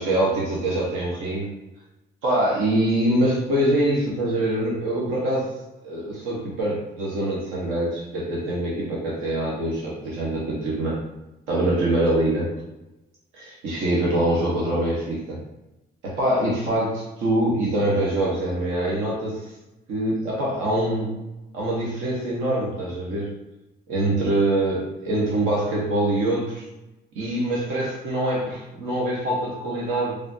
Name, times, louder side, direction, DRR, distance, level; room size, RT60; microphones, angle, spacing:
voice 1, 0.0-1.5 2.2-5.5 5.8-11.0 11.5-12.5 13.3-15.4 16.0-19.5 19.9-21.1 21.5-23.3 23.9-26.6 27.1-30.2, right 1 dB, 90° right, -4 dB, 0.9 m, -24 dB
3.2 x 2.4 x 2.6 m, 0.97 s
cardioid pair, 90°, 20 cm